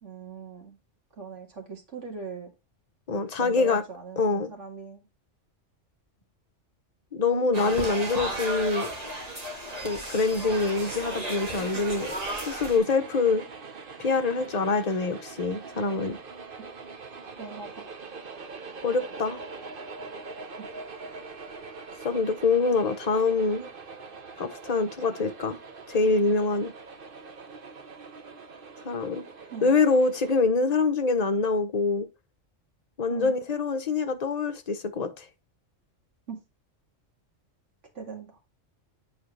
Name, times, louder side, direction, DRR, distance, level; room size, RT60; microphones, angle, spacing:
voice 1, 0.0-0.8 1.2-2.5 3.4-5.1 7.6-7.8 16.6-16.7 17.4-17.9 20.6-20.7 29.5-29.8 33.1-33.4 36.3-36.4 37.9-38.4, right 5 dB, 75° right, 2.4 m, -40 dB
voice 2, 3.1-3.8 4.2-4.5 7.1-8.9 9.8-12.1 12.5-13.4 14.0-16.2 18.8-19.4 22.0-23.7 24.4-25.6 25.9-26.7 28.8-29.2 29.6-32.1 33.0-35.3, left 4 dB, 35° left, 1.0 m, -25 dB
sound 1, 7.5-12.8, right 1 dB, 30° right, 2.1 m, -34 dB
sound 2, 10.4-30.4, right 4 dB, 50° right, 1.1 m, -43 dB
7.8 x 4.4 x 3.3 m
omnidirectional pair, 1.3 m